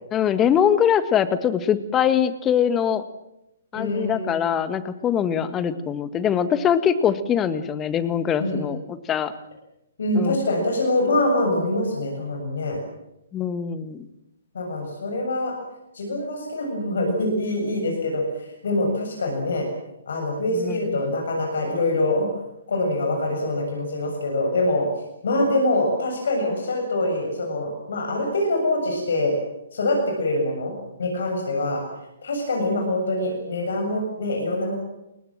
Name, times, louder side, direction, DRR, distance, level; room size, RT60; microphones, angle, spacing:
voice 1, 0.1-3.0 3.7-9.3 10.1-10.4 13.3-14.1 20.5-20.8, left 8 dB, 20° left, 13 dB, 1.6 m, -22 dB
voice 2, 3.7-4.4 8.4-8.7 10.0-12.8 14.5-15.5 15.9-19.7 20.1-22.3 22.7-24.9 25.2-29.3 29.7-30.7 31.0-31.8 32.2-34.8, left 1 dB, 60° left, 2 dB, 7.2 m, -24 dB
29.5 x 22.0 x 7.5 m, 0.89 s
figure-of-eight pair, 125°, 0 cm